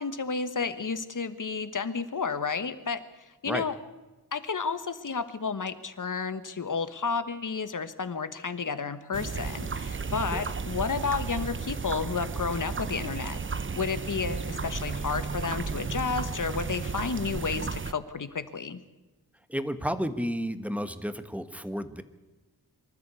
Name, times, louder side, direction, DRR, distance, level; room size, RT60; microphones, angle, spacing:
voice 1, 0.0-3.8 4.3-13.4 13.7-18.8, left 5 dB, 50° left, 12 dB, 1.4 m, -31 dB
sound 1, 9.1-17.9, right 4 dB, 30° right, 0.7 m, -33 dB
voice 2, 19.5-22.0, equal, 5° right, 10 dB, 1.4 m, -32 dB
24.5 x 13.5 x 8.3 m, 1.2 s
wide cardioid pair, 110°, 39 cm